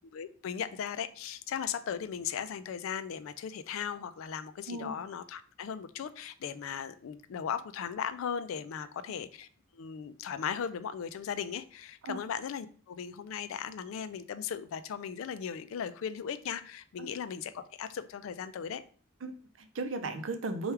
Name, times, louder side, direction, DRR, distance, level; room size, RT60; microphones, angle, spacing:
voice 1, 0.1-9.5 9.7-18.8, left 7 dB, 85° left, 13 dB, 0.3 m, -37 dB
voice 2, 19.2-20.7, right 3 dB, 70° right, 8 dB, 0.5 m, -36 dB
3.3 x 2.3 x 4.4 m, 0.43 s
head